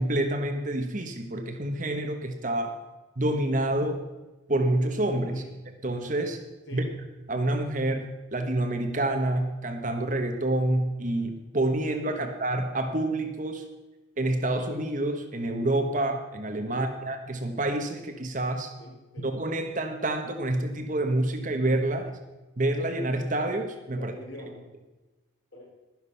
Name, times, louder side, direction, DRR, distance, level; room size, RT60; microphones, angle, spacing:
voice 1, 0.0-2.8 3.2-4.0 4.5-5.4 5.8-6.4 6.7-6.8 7.3-13.6 14.2-18.7 19.2-22.1 22.6-24.1, right 1 dB, 40° right, 6 dB, 1.2 m, -28 dB
voice 2, 18.8-19.3 24.0-24.7 25.5-25.7, equal, 75° left, -2 dB, 4.5 m, -44 dB
12.0 x 10.5 x 5.6 m, 1.1 s
head